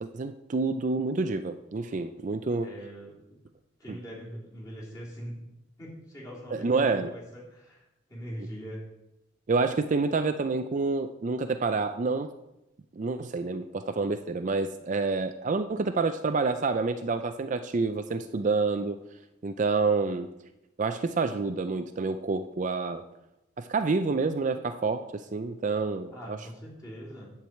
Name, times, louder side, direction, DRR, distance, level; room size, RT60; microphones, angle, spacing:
voice 1, 0.0-2.7 3.9-4.0 6.5-7.1 9.5-12.3 12.9-19.0 19.4-20.3 20.8-23.0 23.6-26.4, right 4 dB, 40° right, 9 dB, 0.4 m, -28 dB
voice 2, 2.6-3.4 3.8-5.4 5.8-8.9 26.1-27.3, equal, 20° left, -6 dB, 3.4 m, -42 dB
10.0 x 4.7 x 7.9 m, 0.92 s
head